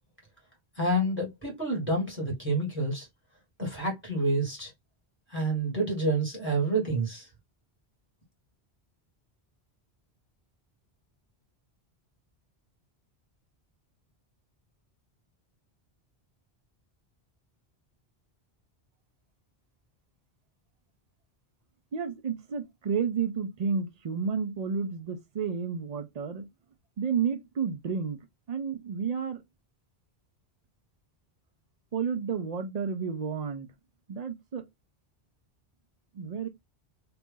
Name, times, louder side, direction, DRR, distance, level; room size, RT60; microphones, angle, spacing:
voice 1, 0.8-3.1 3.6-4.7 5.3-7.3, right 2 dB, 10° right, 1.6 m, -28 dB
voice 2, 21.9-26.5 27.0-29.4 31.9-33.7 34.1-34.7 36.1-36.5, right 6 dB, 50° right, 0.5 m, -31 dB
2.9 x 2.5 x 3.6 m
omnidirectional pair, 1.1 m